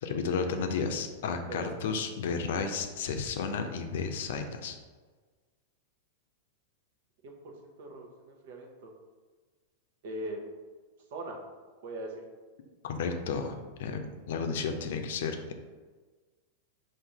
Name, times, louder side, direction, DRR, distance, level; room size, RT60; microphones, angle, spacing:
voice 1, 0.0-4.8 12.8-15.5, left 5 dB, 70° left, 6 dB, 0.5 m, -32 dB
voice 2, 7.2-8.9 10.0-10.4 11.1-11.4 11.8-12.2, right 1 dB, 65° right, 1 dB, 0.9 m, -40 dB
3.8 x 2.6 x 4.5 m, 1.4 s
hypercardioid pair, 110°, 0 cm